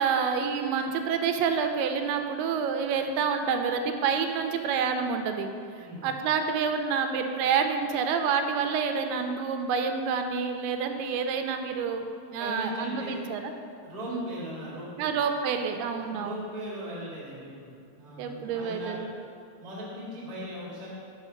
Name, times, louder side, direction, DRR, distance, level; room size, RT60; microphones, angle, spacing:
voice 1, 0.0-5.5 6.0-12.1 12.3-13.4 14.1-14.3 15.0-16.5 18.2-19.1, right 6 dB, 90° right, 6 dB, 2.5 m, -28 dB
voice 2, 5.8-6.1 12.4-13.2 13.8-15.1 16.0-19.0 19.6-20.9, equal, 25° right, -7 dB, 0.8 m, -39 dB
6.3 x 4.9 x 6.5 m, 2.3 s
omnidirectional pair, 4.5 m